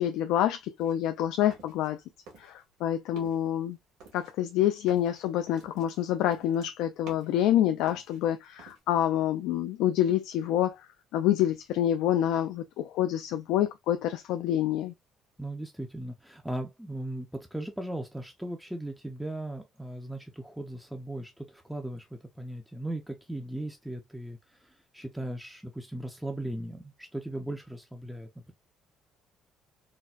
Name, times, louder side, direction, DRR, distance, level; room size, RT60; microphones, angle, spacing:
voice 1, 0.0-2.0 2.4-3.8 4.1-10.8 11.1-14.9, left 11 dB, 85° left, 0.3 m, -27 dB
sound 1, 0.8-2.0 2.3-2.8 3.1-3.5 4.0-7.5 7.8-8.8, right 4 dB, 80° right, 1.6 m, -52 dB
voice 2, 15.4-28.5, right 1 dB, ahead, 0.3 m, -38 dB
4.0 x 2.1 x 2.3 m
cardioid pair, 175°, 0 cm